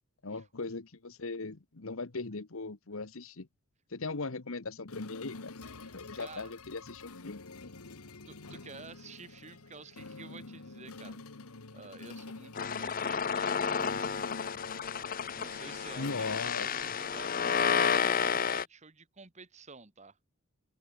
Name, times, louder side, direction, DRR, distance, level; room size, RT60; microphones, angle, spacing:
voice 1, 0.2-3.5 3.9-5.5 5.9-7.7 16.0-16.7, left 3 dB, 65° left, 1.1 m, -39 dB
sound 1, 4.9-17.2, left 3 dB, 85° left, 1.5 m, -48 dB
voice 2, 5.8-6.5 8.2-11.2 11.7-14.2 15.3-20.2, right 4 dB, 30° right, 1.5 m, -50 dB
sound 2, 12.6-18.6, left 6 dB, 40° left, 0.7 m, -31 dB
head